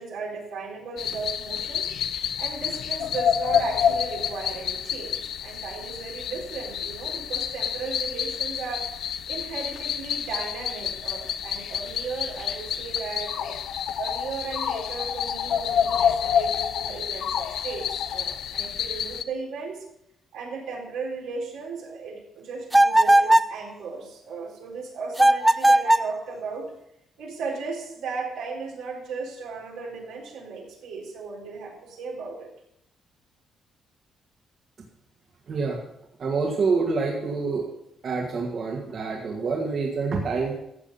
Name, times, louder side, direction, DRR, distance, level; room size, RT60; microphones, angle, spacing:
voice 1, 0.0-1.9 2.4-8.9 9.3-13.6 13.9-19.8 20.3-26.7 27.2-32.5, right 4 dB, 90° right, -2 dB, 4.0 m, -36 dB
sound 1, 1.0-19.2, left 8 dB, 75° left, 0.6 m, -28 dB
sound 2, 22.7-23.6 25.2-26.1, right 1 dB, 10° right, 0.4 m, -17 dB
voice 2, 35.5-35.8 36.2-37.7 38.0-40.6, right 4 dB, 55° right, -1 dB, 2.0 m, -26 dB
13.5 x 7.6 x 5.5 m, 0.78 s
cardioid pair, 90°, 0 cm